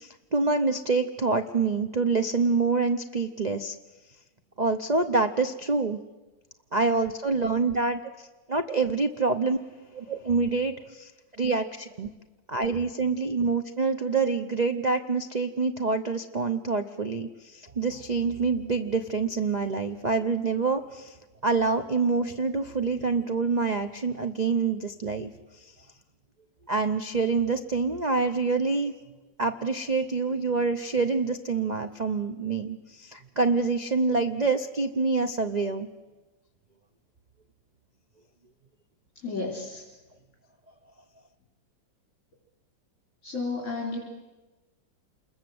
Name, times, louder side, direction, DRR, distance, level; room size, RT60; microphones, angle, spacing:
voice 1, 0.0-3.7 4.6-6.0 6.7-8.0 8.5-9.6 9.9-11.1 11.4-12.1 12.5-21.2 21.4-25.3 25.6-25.7 26.7-28.9 29.4-35.9, right 4 dB, 60° right, 8 dB, 0.4 m, -26 dB
voice 2, 39.2-39.8 43.2-44.0, left 3 dB, 45° left, -3 dB, 4.6 m, -32 dB
27.5 x 21.0 x 7.9 m, 1.1 s
omnidirectional pair, 2.1 m